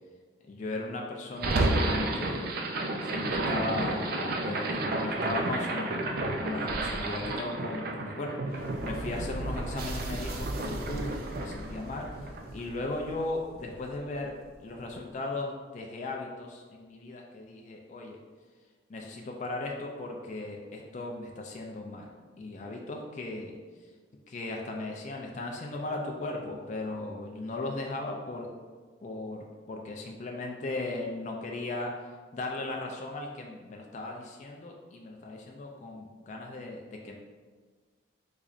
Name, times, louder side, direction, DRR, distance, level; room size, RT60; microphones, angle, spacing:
voice 1, 0.5-6.1 6.4-14.3 14.6-18.2 18.9-22.1 22.4-23.6 24.3-28.5 29.0-31.9 32.3-37.2, left 2 dB, 40° left, 0 dB, 0.3 m, -37 dB
sound 1, 1.4-13.6, right 2 dB, 50° right, 0.3 m, -31 dB
3.6 x 3.1 x 2.4 m, 1.5 s
head